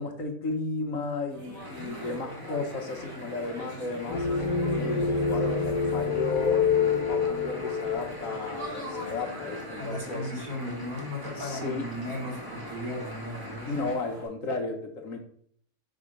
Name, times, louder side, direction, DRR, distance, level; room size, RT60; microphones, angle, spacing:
voice 1, 0.0-10.3 11.4-11.8 13.7-15.2, left 3 dB, 60° left, 3 dB, 1.2 m, -34 dB
sound 1, 1.3-14.3, equal, 40° right, 2.1 m, -43 dB
sound 2, 1.6-14.0, left 1 dB, 15° right, 1.2 m, -44 dB
sound 3, 4.1-9.9, left 5 dB, 75° left, 1.5 m, -28 dB
voice 2, 9.8-13.7, left 1 dB, 65° right, -4 dB, 3.3 m, -36 dB
5.4 x 4.3 x 5.1 m, 0.63 s
omnidirectional pair, 1.7 m